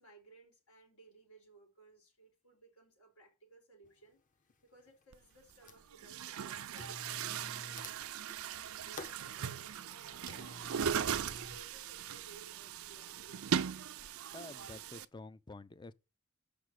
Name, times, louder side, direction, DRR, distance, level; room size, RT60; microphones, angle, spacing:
voice 1, 0.0-13.6, right 3 dB, 90° left, 4.1 m, -61 dB
sound 1, 3.8-3.9 4.5-5.0 5.3-6.0 6.7-11.6, left 2 dB, 40° left, 0.9 m, -51 dB
Chatter / Gurgling / Tap, 5.1-5.2 5.9-15.0, right 8 dB, 80° right, 0.5 m, -39 dB
voice 2, 14.3-15.9, left 2 dB, 20° left, 0.4 m, -49 dB
6.6 x 5.1 x 6.3 m
head